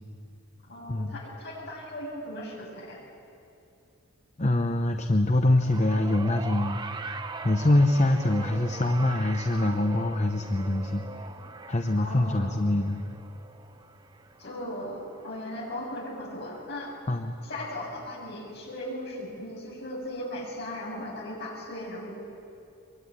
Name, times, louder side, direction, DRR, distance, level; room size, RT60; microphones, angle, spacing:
voice 1, 0.7-3.0 12.0-12.5 14.4-17.0 17.4-22.2, left 1 dB, 50° left, -2 dB, 7.2 m, -37 dB
voice 2, 4.4-6.8 7.4-11.2 11.7-13.0 17.1-17.3, left 1 dB, 30° left, 6 dB, 0.9 m, -24 dB
sound 1, 5.6-16.0 17.1-17.2, right 3 dB, 20° right, 0.8 m, -41 dB
23.5 x 23.0 x 9.7 m, 2.6 s
head